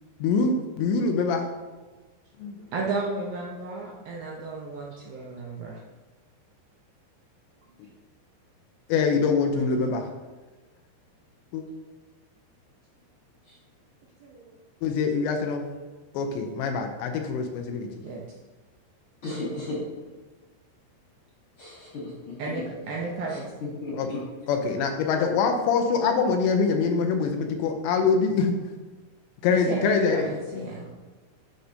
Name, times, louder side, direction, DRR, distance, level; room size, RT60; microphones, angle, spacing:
voice 1, 0.2-1.5 2.4-2.6 8.9-10.1 11.5-11.6 14.8-15.7 16.1-17.9 23.9-24.1 24.5-28.5 29.4-30.6, left 5 dB, 80° left, 4 dB, 2.9 m, -24 dB
voice 2, 2.6-5.8 9.5-10.0 14.2-14.5 18.0-18.2 22.4-23.5 29.5-30.9, right 3 dB, 75° right, -3 dB, 2.2 m, -33 dB
voice 3, 19.2-19.8 21.6-22.4 23.3-24.2, left 2 dB, 50° left, -7 dB, 1.6 m, -35 dB
11.0 x 6.4 x 2.7 m, 1.3 s
omnidirectional pair, 5.3 m